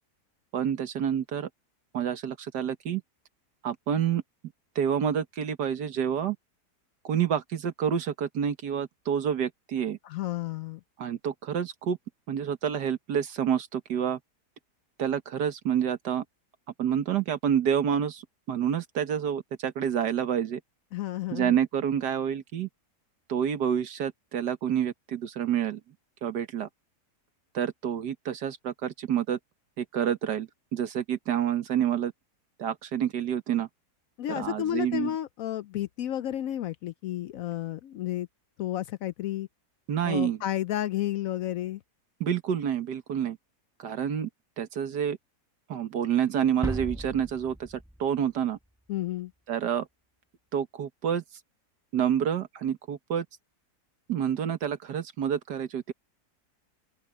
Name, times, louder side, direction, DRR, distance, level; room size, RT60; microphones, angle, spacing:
voice 1, 0.5-1.5 1.9-3.0 3.6-4.2 4.8-6.4 7.0-10.0 11.0-12.0 12.3-14.2 15.0-16.2 16.8-20.6 21.3-22.7 23.3-25.8 26.2-26.7 27.5-29.4 29.8-32.1 32.6-33.7 34.3-35.1 39.9-40.4 42.2-43.4 43.8-44.3 44.6-45.2 45.7-48.6 49.5-49.9 50.5-51.2 51.9-53.3 54.1-55.9, right 8 dB, 85° right, 1.9 m, -28 dB
voice 2, 10.0-10.8 20.9-21.6 34.2-38.3 38.6-39.5 40.0-41.8 48.9-49.3, left 13 dB, 70° left, 0.8 m, -31 dB
sound 1, 46.6-48.7, equal, 5° right, 0.7 m, -36 dB
open air
omnidirectional pair, 1.8 m